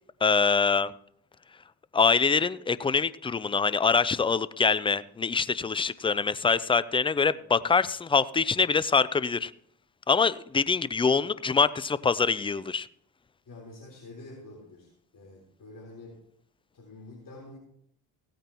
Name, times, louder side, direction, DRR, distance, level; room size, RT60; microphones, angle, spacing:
voice 1, 0.2-0.9 1.9-9.5 10.1-12.9, left 5 dB, 10° left, 17 dB, 0.3 m, -24 dB
voice 2, 13.5-16.2 16.7-17.6, left 2 dB, 40° left, -3 dB, 3.8 m, -47 dB
17.0 x 9.0 x 3.0 m, 0.69 s
supercardioid pair, 60°, 49 cm